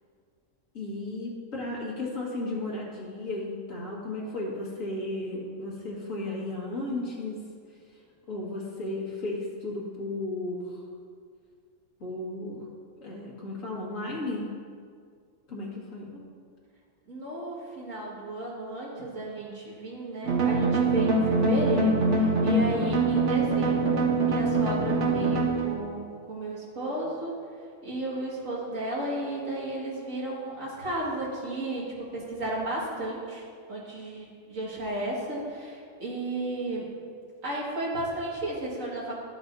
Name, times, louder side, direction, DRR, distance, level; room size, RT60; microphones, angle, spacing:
voice 1, 0.7-7.4 8.3-10.8 12.0-12.6 13.0-14.5 15.5-16.1, left 2 dB, 90° left, -4 dB, 2.2 m, -34 dB
voice 2, 17.1-27.4 27.8-36.9 37.4-39.1, right 2 dB, 80° right, -5 dB, 2.4 m, -33 dB
sound 1, 20.2-25.8, right 2 dB, 65° right, 1.4 m, -24 dB
13.0 x 7.8 x 2.7 m, 2.1 s
omnidirectional pair, 1.4 m